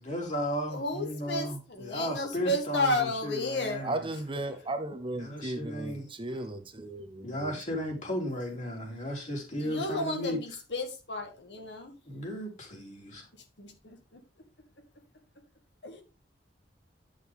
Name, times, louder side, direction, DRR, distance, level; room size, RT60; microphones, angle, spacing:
voice 1, 0.0-4.0 5.2-6.4 7.2-10.4 12.1-13.2, equal, 45° left, 3.4 m, -35 dB
voice 2, 0.7-3.8 5.8-5.9 9.6-12.0 13.6-14.2 15.8-16.0, left 1 dB, 75° left, 2.0 m, -32 dB
voice 3, 3.8-7.5, right 2 dB, 30° right, 0.9 m, -36 dB
10.0 x 6.4 x 3.6 m
head